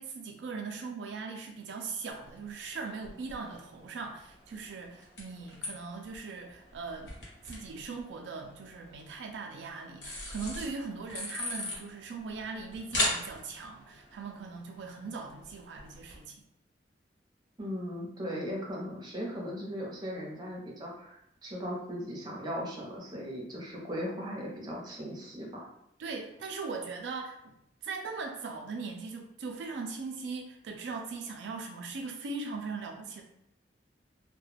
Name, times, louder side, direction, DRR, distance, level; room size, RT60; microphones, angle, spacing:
voice 1, 0.0-7.2 7.4-16.4 26.0-27.5 27.8-33.2, right 4 dB, 85° right, 2 dB, 0.4 m, -40 dB
sound 1, 2.1-16.2, left 1 dB, 90° left, 1.1 m, -41 dB
voice 2, 17.6-25.6, equal, 25° right, -3 dB, 0.7 m, -38 dB
2.3 x 2.2 x 3.2 m, 0.79 s
head